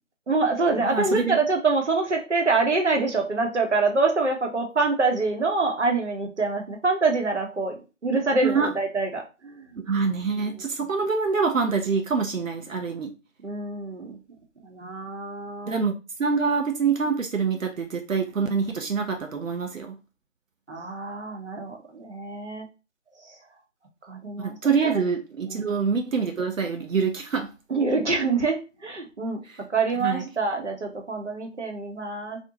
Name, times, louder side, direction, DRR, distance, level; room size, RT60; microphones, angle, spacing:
voice 1, 0.3-9.8 13.4-14.2 14.6-15.8 20.7-22.6 23.2-23.4 24.0-24.6 24.8-25.0 25.5-25.7 27.7-29.4 29.7-32.4, right 3 dB, 60° right, 2 dB, 0.8 m, -25 dB
voice 2, 0.9-1.4 8.4-8.7 9.9-13.1 14.8-14.9 15.7-15.9 16.2-20.0 24.4-27.5 30.0-30.2, right 5 dB, 90° right, 4 dB, 0.6 m, -25 dB
2.5 x 2.1 x 2.7 m, 0.31 s
figure-of-eight pair, 170°, 39 cm